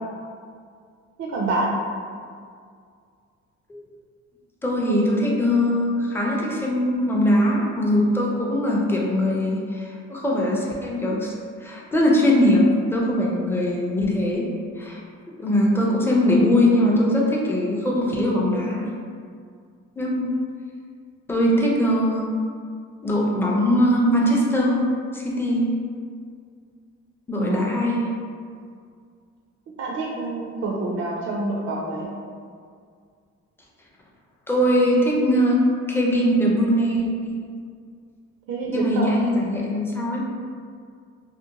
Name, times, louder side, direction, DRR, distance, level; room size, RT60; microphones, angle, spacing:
voice 1, 1.2-1.7 27.4-27.6 29.8-32.1 38.5-39.1, right 3 dB, 55° right, -3 dB, 0.4 m, -27 dB
voice 2, 4.6-11.3 11.6-12.6 12.9-14.5 14.8-15.0 15.4-18.9 20.0-20.3 21.3-22.3 23.0-24.8 25.1-25.7 27.3-28.1 34.5-37.4 38.7-40.2, left 1 dB, 10° left, -3 dB, 0.4 m, -21 dB
2.5 x 2.1 x 2.8 m, 2.2 s
cardioid pair, 90°, 30 cm